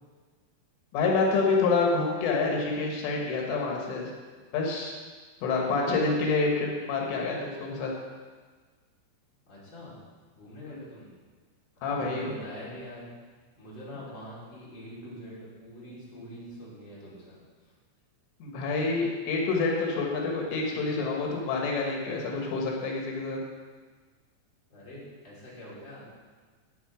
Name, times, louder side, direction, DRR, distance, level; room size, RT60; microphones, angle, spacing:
voice 1, 0.9-4.1 4.5-4.9 5.4-7.9 10.7-10.8 11.8-12.3 18.4-23.4, left 3 dB, 85° left, -1 dB, 4.1 m, -27 dB
voice 2, 9.5-10.0 10.3-11.1 11.8-13.1 13.6-17.4 24.7-26.1, equal, 25° left, -8 dB, 4.1 m, -44 dB
11.5 x 8.8 x 5.0 m, 1.4 s
omnidirectional pair, 5.4 m